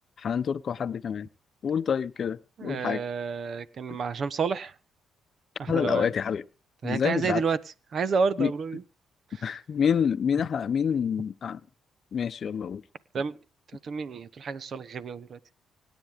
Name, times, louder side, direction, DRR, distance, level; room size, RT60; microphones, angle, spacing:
voice 1, 0.2-1.3 1.6-3.0 5.7-6.4 6.8-7.4 8.4-8.5 9.4-11.6 12.1-12.8, left 7 dB, 50° left, 0.7 m, -27 dB
voice 2, 2.6-4.7 5.6-6.1 6.8-7.6 7.9-8.8 9.3-9.6 13.1-13.3 13.8-15.4, right 5 dB, 50° right, 1.1 m, -30 dB
25.5 x 9.2 x 3.6 m
cardioid pair, 90°, 0 cm